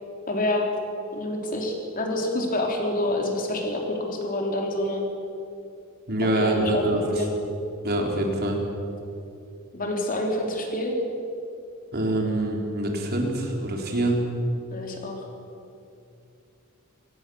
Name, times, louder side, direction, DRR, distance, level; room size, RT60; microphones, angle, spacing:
voice 1, 0.3-0.7 1.1-5.0 6.4-7.3 9.7-11.0 14.7-15.3, left 1 dB, 40° left, 1 dB, 3.6 m, -27 dB
voice 2, 6.1-7.2 7.8-8.6 11.9-14.2, right 1 dB, 50° right, 1 dB, 3.9 m, -25 dB
23.5 x 18.5 x 7.1 m, 2.6 s
head